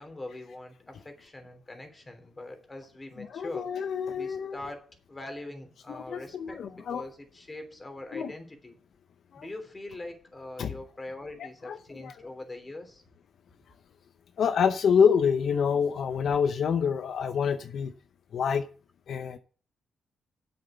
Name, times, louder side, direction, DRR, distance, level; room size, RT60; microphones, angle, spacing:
voice 1, 0.0-3.7 4.2-8.8 9.4-13.0, left 2 dB, 20° left, 5 dB, 3.2 m, -42 dB
voice 2, 3.2-4.6 5.9-7.0 8.1-8.3 9.3-9.5 10.6-10.7 11.4-12.2 14.4-17.9 18.3-18.7 19.1-19.4, left 7 dB, 65° left, 10 dB, 0.7 m, -27 dB
7.9 x 6.9 x 7.9 m, 0.41 s
cardioid pair, 85°, 0 cm